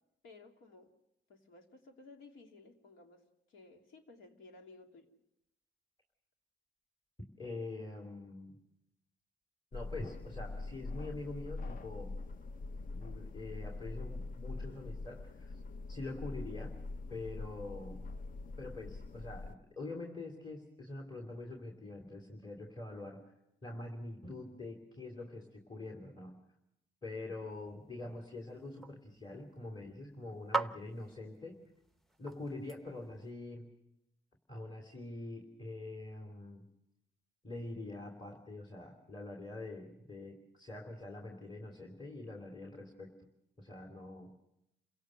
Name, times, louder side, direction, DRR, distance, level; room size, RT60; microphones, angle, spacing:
voice 1, 0.2-0.9 1.3-5.1, left 3 dB, 80° left, 3 dB, 3.0 m, -57 dB
voice 2, 7.4-8.6 9.7-12.2 12.9-15.3 15.9-16.8 17.1-18.0 18.6-23.2 23.6-26.4 27.0-31.6 32.2-33.7 34.5-36.6 37.4-43.1 43.6-44.3, left 2 dB, 20° left, 2 dB, 3.2 m, -45 dB
sound 1, 9.7-19.5, left 3 dB, 45° left, 0.8 m, -43 dB
sound 2, 27.5-33.3, right 3 dB, ahead, 0.8 m, -43 dB
28.5 x 17.0 x 6.6 m, 0.87 s
cardioid pair, 90°, 20 cm